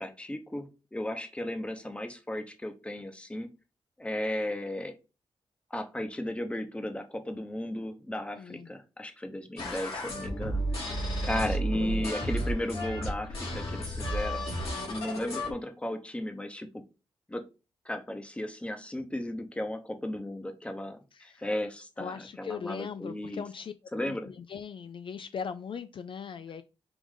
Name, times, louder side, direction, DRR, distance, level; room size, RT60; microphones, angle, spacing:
voice 1, 0.0-3.5 4.0-4.9 5.7-11.0 11.2-14.5 14.9-16.8 17.3-17.4 17.8-23.4 23.9-24.3, left 1 dB, 10° left, 0.8 m, -35 dB
voice 2, 8.4-8.7 21.1-21.5 22.0-23.7 24.0-26.6, left 6 dB, 55° left, 0.3 m, -39 dB
sound 1, 9.6-15.5, equal, 75° left, 2.4 m, -32 dB
4.8 x 2.6 x 3.6 m
cardioid pair, 75°, 10 cm